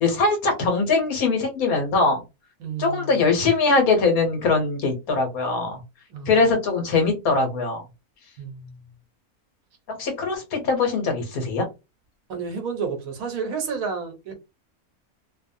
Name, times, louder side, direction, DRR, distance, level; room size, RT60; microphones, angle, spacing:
voice 1, 0.0-2.2 2.8-5.8 6.3-7.8 9.9-11.7, left 3 dB, 75° left, 1.4 m, -22 dB
voice 2, 2.6-3.2 6.1-6.4 8.4-8.9 12.3-14.3, right 5 dB, 70° right, 1.3 m, -31 dB
3.0 x 2.2 x 2.6 m
omnidirectional pair, 1.6 m